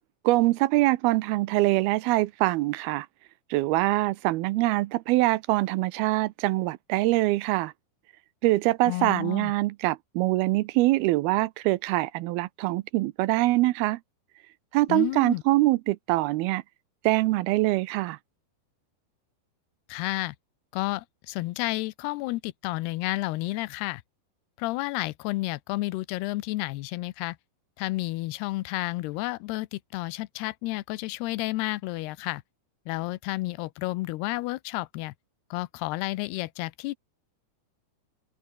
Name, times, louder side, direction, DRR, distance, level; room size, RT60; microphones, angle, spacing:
voice 1, 0.2-3.1 3.5-7.7 8.4-14.0 14.7-16.6 17.0-18.2, right 19 dB, 85° right, 2.5 m, -24 dB
voice 2, 8.9-9.5 14.9-15.4 19.9-20.4 20.7-24.0 24.6-27.4 27.8-32.4 32.9-35.1 35.5-37.0, left 19 dB, 90° left, 2.8 m, -31 dB
omnidirectional pair, 4.5 m